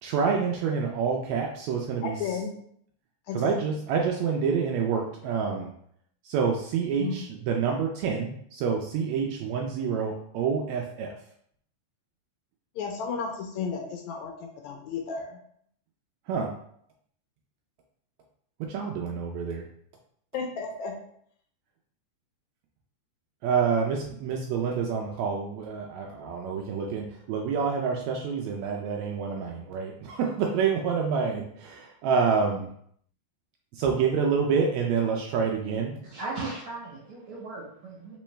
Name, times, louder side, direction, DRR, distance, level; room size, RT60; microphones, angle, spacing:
voice 1, 0.0-2.2 3.3-5.7 6.2-11.1 16.3-16.5 18.6-19.7 23.4-32.7 33.7-35.9, right 6 dB, 80° right, 1 dB, 1.7 m, -27 dB
voice 2, 2.0-2.5 3.3-3.6 7.0-7.3 12.8-15.4 20.3-20.9, left 5 dB, 75° left, 2 dB, 1.8 m, -33 dB
voice 3, 36.0-38.2, right 3 dB, 60° right, -4 dB, 1.5 m, -37 dB
4.3 x 3.8 x 3.1 m, 0.67 s
omnidirectional pair, 3.5 m